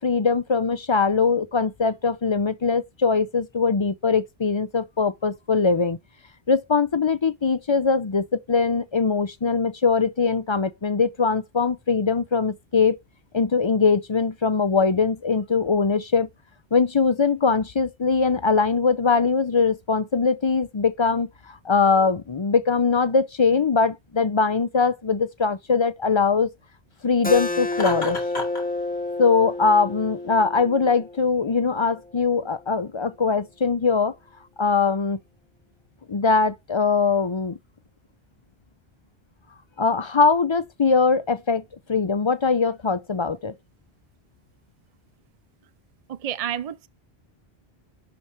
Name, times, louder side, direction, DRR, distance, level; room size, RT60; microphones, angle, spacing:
voice 1, 0.0-6.0 6.5-12.9 13.3-16.3 16.7-26.5 27.0-28.2 29.2-34.1 34.6-35.2 36.1-37.6 39.8-41.6 41.9-43.5, left 5 dB, 35° left, 0.5 m, -21 dB
Keyboard (musical), 27.2-32.4, left 2 dB, 10° left, 1.1 m, -30 dB
Laughter, 27.7-28.7, left 2 dB, 85° left, 2.8 m, -31 dB
voice 2, 46.1-46.9, right 10 dB, 50° right, 0.5 m, -30 dB
11.0 x 4.7 x 3.3 m
omnidirectional pair, 1.1 m